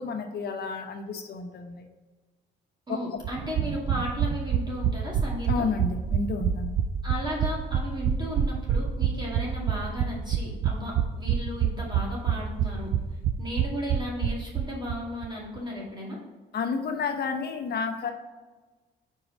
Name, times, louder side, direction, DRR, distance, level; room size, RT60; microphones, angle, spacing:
voice 1, 0.0-1.9 2.9-3.0 5.5-6.7 16.5-18.1, left 5 dB, 55° left, 4 dB, 0.9 m, -31 dB
voice 2, 2.9-5.7 7.0-12.9 13.4-16.2, equal, 20° right, -4 dB, 2.1 m, -35 dB
sound 1, 3.2-15.0 15.2-15.3 15.6-15.7, right 8 dB, 50° right, 0.5 m, -27 dB
4.8 x 4.6 x 5.2 m, 1.3 s
cardioid pair, 90°, 20 cm